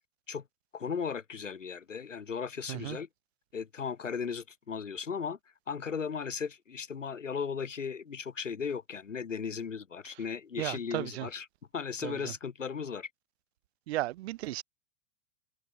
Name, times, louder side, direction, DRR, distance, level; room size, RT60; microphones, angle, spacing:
voice 1, 0.7-3.1 3.5-5.4 5.7-11.5 11.7-13.1, left 6 dB, 85° left, 4.6 m, -36 dB
voice 2, 10.6-11.3 12.0-12.3 13.9-14.6, right 16 dB, 60° right, 3.0 m, -35 dB
hypercardioid pair, 105°, 37 cm